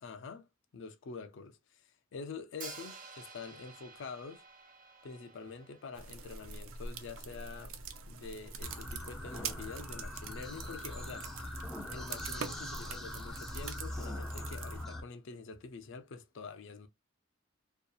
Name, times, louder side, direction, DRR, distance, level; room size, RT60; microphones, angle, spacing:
voice 1, 0.0-0.5 0.7-4.4 5.0-7.8 8.1-11.3 11.9-16.9, left 4 dB, 65° left, 0.4 m, -46 dB
Hi-hat, 2.6-6.6, right 4 dB, 40° right, 0.6 m, -51 dB
sound 1, 5.9-14.8, right 5 dB, 90° right, 0.4 m, -44 dB
sound 2, 8.6-15.0, left 1 dB, ahead, 0.5 m, -42 dB
2.7 x 2.3 x 2.3 m
head